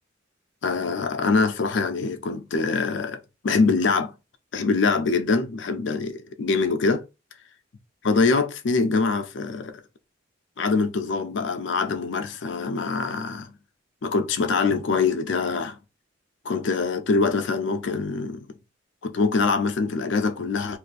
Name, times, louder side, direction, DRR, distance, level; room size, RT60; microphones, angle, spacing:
voice 1, 0.6-4.1 4.5-7.0 8.0-9.8 10.6-13.5 14.0-15.8 16.4-18.5 19.0-20.8, left 4 dB, 70° left, 0.5 m, -24 dB
2.7 x 2.4 x 4.0 m
head